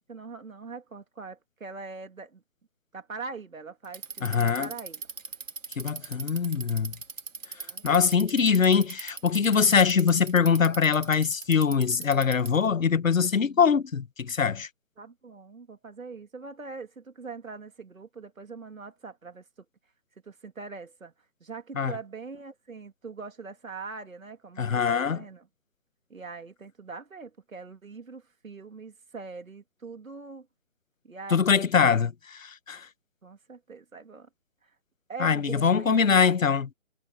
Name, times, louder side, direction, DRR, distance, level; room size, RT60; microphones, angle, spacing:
voice 1, 0.1-2.4 2.9-5.0 7.6-7.8 15.0-19.4 20.2-21.1 21.4-25.5 26.1-30.5 31.0-31.6 33.2-34.3 35.1-36.3, right 4 dB, 90° right, 3.1 m, -42 dB
Bicycle, 3.8-12.7, right 4 dB, 75° right, 2.9 m, -39 dB
voice 2, 4.2-4.7 5.8-6.9 7.8-14.7 21.8-21.9 24.6-25.2 31.3-32.9 35.2-36.7, left 6 dB, 85° left, 1.2 m, -23 dB
hypercardioid pair, 170°, 39 cm